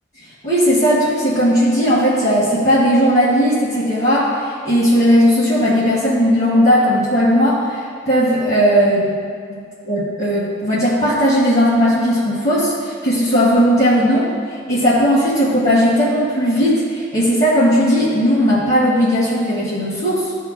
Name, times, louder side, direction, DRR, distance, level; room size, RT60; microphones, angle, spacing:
voice 1, 0.4-9.2 9.5-14.3 14.7-20.3, equal, 45° left, -11 dB, 1.7 m, -16 dB
13.5 x 4.6 x 2.2 m, 2.3 s
head